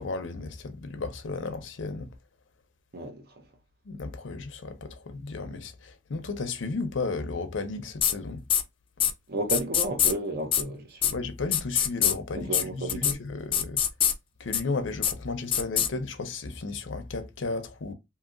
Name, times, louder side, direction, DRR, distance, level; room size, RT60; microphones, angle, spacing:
voice 1, 0.0-2.1 3.9-8.4 11.1-13.8 14.4-17.9, left 3 dB, 85° left, 0.6 m, -34 dB
sound 1, 8.0-8.1 8.5-8.6 9.0-9.1 9.5-10.1 10.5-10.6 11.0-11.1 11.5-12.1 12.5-12.6 12.9-13.1 13.5-14.1 14.5-14.6 15.0-15.1 15.5-15.9, left 9 dB, 30° left, 0.4 m, -23 dB
voice 2, 9.3-11.2 12.3-13.2, right 2 dB, 55° right, 0.8 m, -32 dB
2.8 x 2.8 x 2.5 m
head